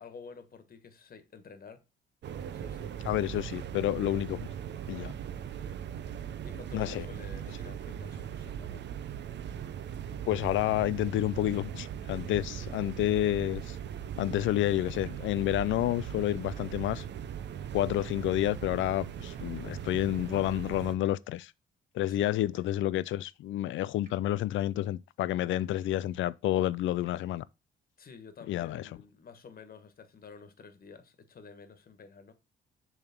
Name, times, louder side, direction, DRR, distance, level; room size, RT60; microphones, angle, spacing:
voice 1, 0.0-1.8 2.5-3.0 6.4-8.8 22.1-22.4 28.0-32.3, left 5 dB, 45° left, 1.4 m, -50 dB
sound 1, 2.2-20.9, right 9 dB, 60° right, 0.7 m, -39 dB
voice 2, 3.0-4.5 4.9-5.1 6.7-7.1 10.3-13.8 14.2-17.1 17.7-21.5 21.9-27.4 28.5-28.9, left 14 dB, 75° left, 0.5 m, -29 dB
sound 2, 15.0-15.1 16.5-16.6 18.0-18.1 19.5-19.6 21.0-21.1 22.5-22.6 24.0-24.1 25.5-25.6 27.0-27.1, right 2 dB, 40° right, 3.5 m, -61 dB
7.0 x 3.5 x 5.9 m
cardioid pair, 90°, 20 cm